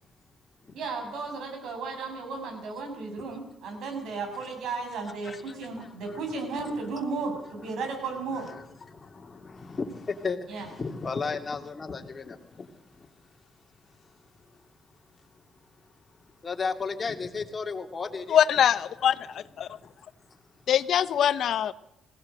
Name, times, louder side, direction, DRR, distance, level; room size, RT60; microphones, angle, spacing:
voice 1, 0.7-8.5 10.5-10.7, right 4 dB, 75° right, 4 dB, 7.4 m, -34 dB
voice 2, 5.2-6.2 6.6-6.9 8.3-13.1 14.0-14.1 14.5-14.6 15.2-15.4 16.2-18.4 19.6-20.0 20.3-20.4, left 4 dB, 35° left, 4 dB, 2.7 m, -35 dB
voice 3, 18.3-19.7 20.7-21.7, left 9 dB, 70° left, 14 dB, 0.9 m, -23 dB
20.0 x 17.5 x 7.9 m, 0.81 s
cardioid pair, 90°, 0 cm